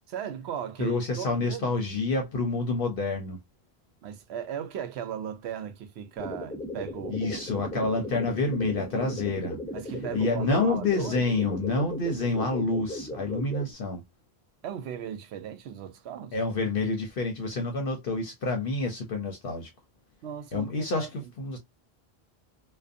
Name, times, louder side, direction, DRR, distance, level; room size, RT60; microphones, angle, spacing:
voice 1, 0.1-1.7 4.0-7.4 7.8-7.9 9.7-11.1 14.6-16.3 20.2-21.1, right 9 dB, 85° right, 0.8 m, -37 dB
voice 2, 0.8-3.4 7.1-9.6 10.1-14.0 16.3-19.7 20.5-21.6, left 3 dB, 65° left, 0.8 m, -28 dB
sound 1, 6.2-13.7, left 1 dB, 5° left, 0.6 m, -37 dB
2.5 x 2.2 x 2.4 m
omnidirectional pair, 1.1 m